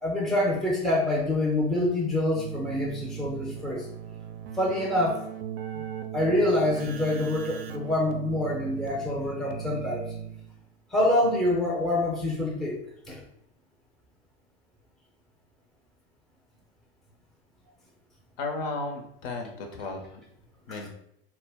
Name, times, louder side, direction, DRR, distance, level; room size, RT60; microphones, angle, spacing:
voice 1, 0.0-3.9 4.6-5.2 5.7-5.8 6.1-10.1 10.9-12.8 13.1-13.2 20.7-20.8, left 1 dB, ahead, -2 dB, 0.5 m, -26 dB
Keyboard (musical), 2.3-10.7, right 9 dB, 65° right, 0.4 m, -38 dB
voice 2, 18.4-20.1 20.7-20.9, left 3 dB, 60° left, 3 dB, 0.7 m, -34 dB
2.1 x 2.1 x 3.4 m, 0.74 s
hypercardioid pair, 100°, 32 cm